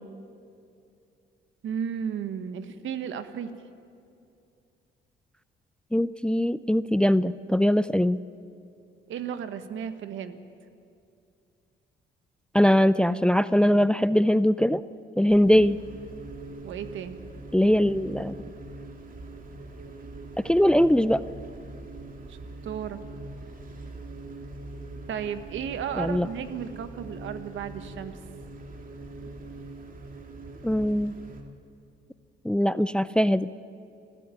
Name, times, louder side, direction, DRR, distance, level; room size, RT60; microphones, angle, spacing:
voice 1, 1.6-3.5 9.1-10.4 16.6-17.2 22.3-22.4 22.6-23.0 25.1-28.2, right 8 dB, 75° right, 10 dB, 1.5 m, -34 dB
voice 2, 5.9-8.2 12.5-14.8 15.2-15.8 17.5-18.3 20.4-21.2 26.0-26.3 30.6-31.1 32.4-33.5, equal, 5° left, 16 dB, 0.5 m, -21 dB
sound 1, 15.3-31.4, right 2 dB, 45° right, 2.9 m, -42 dB
28.5 x 13.5 x 9.2 m, 2.5 s
cardioid pair, 90°, 20 cm